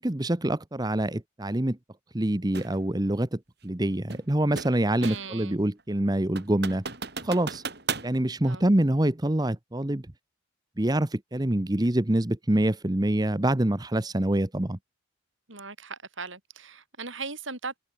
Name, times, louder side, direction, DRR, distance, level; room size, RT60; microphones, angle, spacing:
voice 1, 0.0-1.8 2.1-6.8 7.2-7.6 8.0-10.0 10.8-14.8, right 1 dB, 20° right, 0.9 m, -26 dB
sound 1, 2.5-2.8 4.1-5.4 5.8-5.9 6.4-8.1, right 4 dB, 50° right, 6.1 m, -35 dB
voice 2, 5.0-5.6 8.4-8.6 15.5-17.8, right 4 dB, 70° right, 7.9 m, -38 dB
head